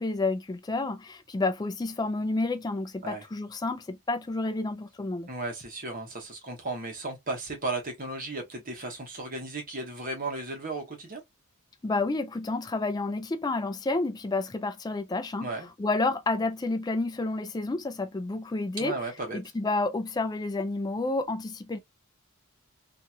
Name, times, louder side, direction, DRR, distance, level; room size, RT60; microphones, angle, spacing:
voice 1, 0.0-5.3 11.8-15.5 15.8-19.0 19.3-21.8, left 2 dB, 20° left, 0.3 m, -30 dB
voice 2, 5.3-11.2 15.4-15.7 18.8-19.4, right 2 dB, 40° right, 1.1 m, -35 dB
2.8 x 2.6 x 2.2 m
head